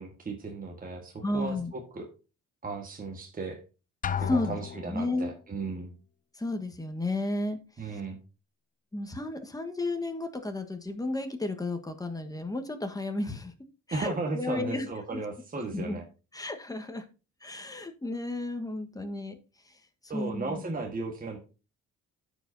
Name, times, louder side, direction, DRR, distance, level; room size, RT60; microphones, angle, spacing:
voice 1, 0.0-2.1 2.6-3.6 4.2-5.9 7.8-8.2 13.9-16.0 20.1-21.4, right 3 dB, 30° right, 1 dB, 1.5 m, -35 dB
voice 2, 1.2-1.7 4.3-4.6 4.9-5.3 6.4-7.6 8.9-13.5 13.9-14.9 15.1-15.2 15.7-16.0 16.3-17.0 17.4-19.4 20.1-20.6, left 2 dB, 10° left, 5 dB, 1.4 m, -32 dB
Drum, 4.0-5.2, left 8 dB, 30° left, 0.4 m, -33 dB
14.0 x 5.1 x 2.7 m, 0.31 s
cardioid pair, 90°, 30 cm